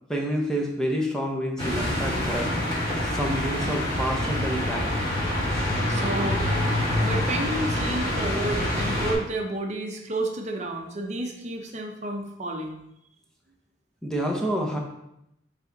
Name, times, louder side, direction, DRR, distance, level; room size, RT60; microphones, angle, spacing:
voice 1, 0.1-2.7 3.0-4.9 14.0-14.8, equal, 5° left, 0 dB, 0.8 m, -28 dB
sound 1, 1.6-9.1, left 1 dB, 20° left, 2.2 m, -26 dB
voice 2, 5.9-6.7 7.0-12.8, right 2 dB, 40° right, 2 dB, 0.7 m, -31 dB
7.5 x 3.4 x 3.9 m, 0.81 s
head